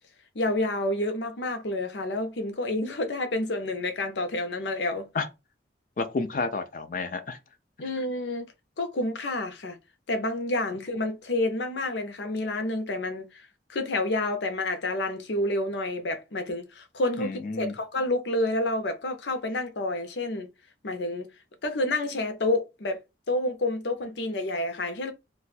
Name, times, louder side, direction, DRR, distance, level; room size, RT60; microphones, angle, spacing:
voice 1, 0.3-5.1 7.8-8.5 8.8-9.8 10.1-20.5 20.8-21.3 21.6-23.0 23.3-25.1, left 2 dB, 80° left, 0.7 m, -29 dB
voice 2, 6.0-7.4 17.2-17.7, left 3 dB, 50° left, 0.4 m, -30 dB
2.6 x 2.2 x 4.0 m
head